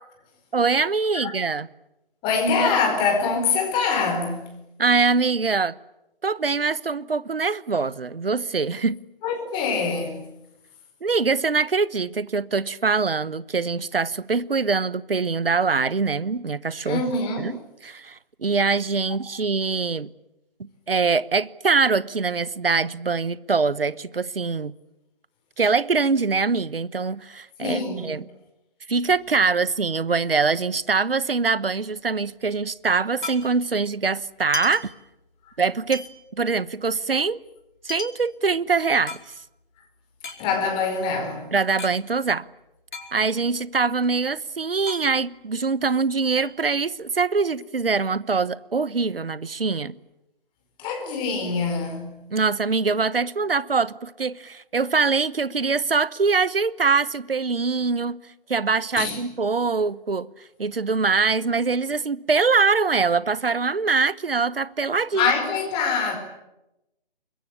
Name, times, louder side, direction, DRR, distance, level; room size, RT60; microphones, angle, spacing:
voice 1, 0.5-1.7 4.8-5.7 6.2-9.0 11.0-17.0 17.4-17.5 17.8-20.1 20.6-24.7 25.6-28.2 28.9-34.9 35.6-36.0 36.4-37.4 37.8-39.2 41.5-42.5 43.1-50.0 52.3-58.2 58.5-60.3 60.6-65.3, right 4 dB, 75° right, 1.1 m, -23 dB
voice 2, 2.2-4.5 9.2-10.2 16.8-17.6 27.6-28.1 40.4-41.5 50.8-52.2 59.0-59.2 65.1-66.2, left 4 dB, 15° left, 4.7 m, -24 dB
sound 1, 29.2-30.9 31.2-31.3 31.5-33.9 34.3-35.5 35.9-39.7 40.1-42.0 42.2-42.3 42.6-43.6 43.9-46.0 46.4-47.2, left 3 dB, 55° left, 4.6 m, -38 dB
25.0 x 22.0 x 9.8 m
figure-of-eight pair, 140°, 29 cm